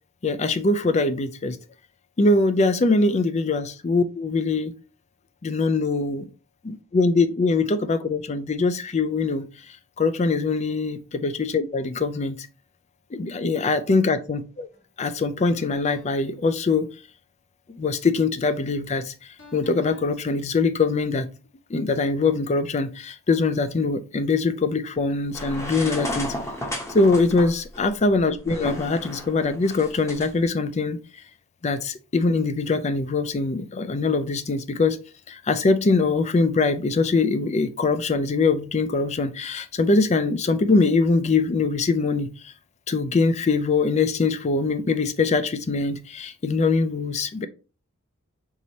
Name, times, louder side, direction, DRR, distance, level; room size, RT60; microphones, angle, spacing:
voice 1, 0.2-1.6 2.2-4.7 5.4-6.3 6.6-9.4 10.0-12.5 13.1-14.7 15.0-16.9 17.7-21.3 21.7-26.3 26.9-31.0 31.6-35.0 35.3-42.5 42.9-47.5, left 3 dB, 30° left, 0.4 m, -23 dB
sound 1, 14.7-14.9 15.5-16.3 19.4-20.1, left 1 dB, 55° left, 1.5 m, -49 dB
sound 2, 25.3-30.3, left 1 dB, 15° left, 0.9 m, -33 dB
4.7 x 4.1 x 2.8 m
head